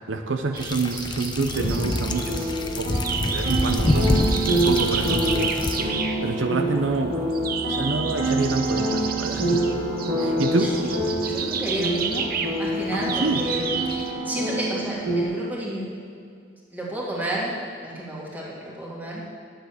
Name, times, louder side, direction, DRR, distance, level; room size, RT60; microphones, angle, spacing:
voice 1, 0.1-2.4 2.8-3.0 3.3-5.6 6.2-7.2 7.7-9.6 10.2-10.9 12.9-13.4, right 3 dB, 85° right, 6 dB, 0.7 m, -27 dB
sound 1, 0.5-14.1, right 6 dB, 50° right, 0.7 m, -32 dB
sound 2, 0.6-5.8, left 1 dB, 25° left, 0.7 m, -26 dB
sound 3, 1.6-15.2, right 1 dB, 65° right, 1.9 m, -27 dB
voice 2, 10.2-10.7 11.2-15.9 16.7-19.2, right 1 dB, 10° right, -5 dB, 2.2 m, -31 dB
10.0 x 8.1 x 7.1 m, 2.2 s
head